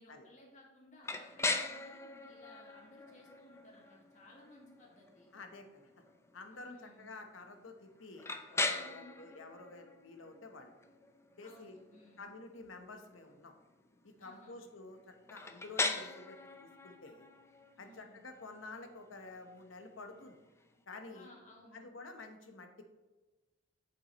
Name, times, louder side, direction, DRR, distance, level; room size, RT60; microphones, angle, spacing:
voice 1, 0.0-5.3 6.5-7.1 8.8-9.3 11.4-12.3 14.2-14.6 17.8-18.2 21.1-21.9, left 1 dB, 40° left, -2 dB, 1.7 m, -59 dB
sound 1, 1.0-20.8, left 3 dB, 15° left, 0.5 m, -42 dB
voice 2, 5.3-5.9 6.3-10.7 11.4-11.8 12.2-13.5 14.0-17.3 17.8-20.4 20.9-21.3 21.7-22.8, left 3 dB, 85° left, 6 dB, 0.9 m, -50 dB
8.1 x 6.9 x 3.0 m, 1.2 s
head